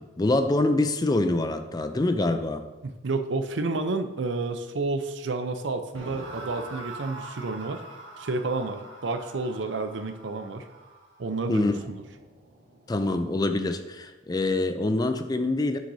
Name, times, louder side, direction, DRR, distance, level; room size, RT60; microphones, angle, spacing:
voice 1, 0.0-2.6 11.5-11.8 12.9-15.8, left 2 dB, 20° left, 8 dB, 0.4 m, -25 dB
voice 2, 2.8-7.8 8.2-10.7 11.2-12.0, right 3 dB, 70° right, 8 dB, 0.6 m, -30 dB
sound 1, 5.9-13.1, right 2 dB, 85° right, 1.5 m, -44 dB
9.8 x 6.4 x 2.7 m, 1.1 s
head